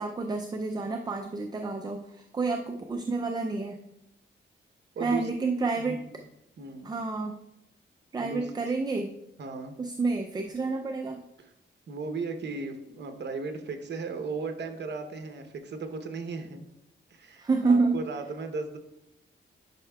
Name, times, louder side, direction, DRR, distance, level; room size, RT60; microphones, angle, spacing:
voice 1, 0.0-3.8 5.0-6.0 6.8-7.4 8.1-9.1 9.8-11.2 17.4-18.0, right 3 dB, 20° right, 4 dB, 0.4 m, -29 dB
voice 2, 4.9-5.3 5.8-6.0 6.6-7.0 8.2-8.5 9.4-9.8 11.4-11.5 11.9-16.7 17.1-18.8, right 4 dB, 60° right, 6 dB, 0.8 m, -36 dB
10.5 x 5.6 x 2.3 m, 0.84 s
wide cardioid pair, 155°, 20 cm